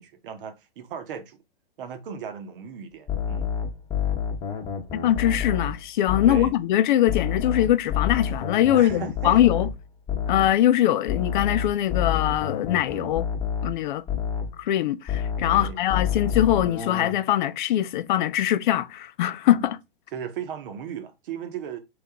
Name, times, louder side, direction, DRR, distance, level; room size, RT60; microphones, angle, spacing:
voice 1, 0.0-1.4 1.8-3.5 6.3-6.6 8.7-9.4 15.5-15.8 19.5-19.7 20.1-21.8, right 7 dB, 60° right, 1.1 m, -36 dB
sound 1, 3.1-6.6 7.1-10.6 11.1-14.6 15.1-17.1, left 7 dB, 15° left, 0.9 m, -28 dB
voice 2, 4.9-9.7 10.3-13.3 13.6-14.0 14.6-19.8, left 12 dB, 50° left, 0.5 m, -22 dB
3.8 x 3.4 x 3.6 m
hypercardioid pair, 120°, 30 cm